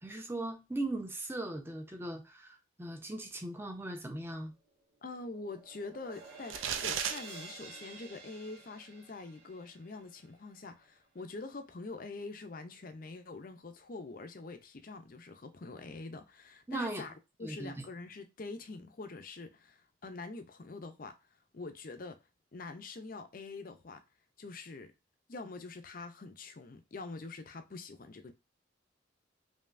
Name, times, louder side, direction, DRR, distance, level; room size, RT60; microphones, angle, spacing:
voice 1, 0.0-4.5 16.7-17.0 17.4-17.7, right 2 dB, 10° right, 0.6 m, -38 dB
sound 1, 4.5-10.8, right 3 dB, 55° right, 1.7 m, -51 dB
voice 2, 5.0-17.1 17.4-21.2 21.5-22.2 22.5-24.0 24.4-24.9 25.3-28.3, left 3 dB, 45° left, 0.5 m, -45 dB
sound 2, 6.5-7.2, right 8 dB, 85° right, 0.5 m, -33 dB
5.4 x 2.7 x 2.5 m
head